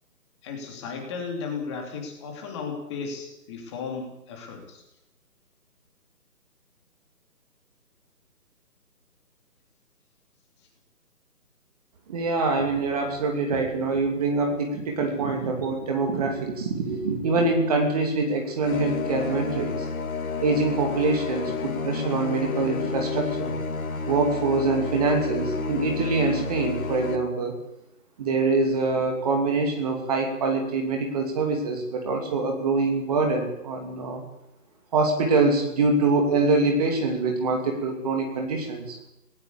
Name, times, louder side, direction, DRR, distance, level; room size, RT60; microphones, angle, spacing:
voice 1, 0.4-4.8, left 5 dB, 20° left, 2 dB, 3.0 m, -35 dB
voice 2, 12.1-19.7 20.4-23.5 24.1-27.5 28.2-34.2 34.9-39.0, right 3 dB, 25° right, 3 dB, 2.9 m, -24 dB
sound 1, 18.6-27.2, left 4 dB, 60° left, 2.2 m, -30 dB
18.5 x 18.0 x 8.5 m, 0.83 s
figure-of-eight pair, 165°, 47 cm